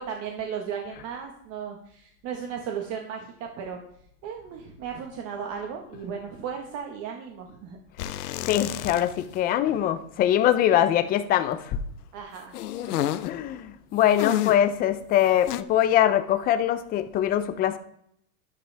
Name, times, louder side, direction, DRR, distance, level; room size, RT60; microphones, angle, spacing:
voice 1, 0.0-3.8 4.2-7.8 12.1-12.5, right 7 dB, 35° right, 2 dB, 1.5 m, -35 dB
sound 1, 8.0-9.4 9.7-9.8 12.5-13.4 14.1-14.7 15.5-15.6, left 13 dB, 85° left, 1.0 m, -30 dB
voice 2, 8.4-11.8 13.2-17.8, left 11 dB, 20° left, 11 dB, 0.6 m, -23 dB
12.5 x 11.5 x 3.5 m, 0.69 s
supercardioid pair, 150°, 45 cm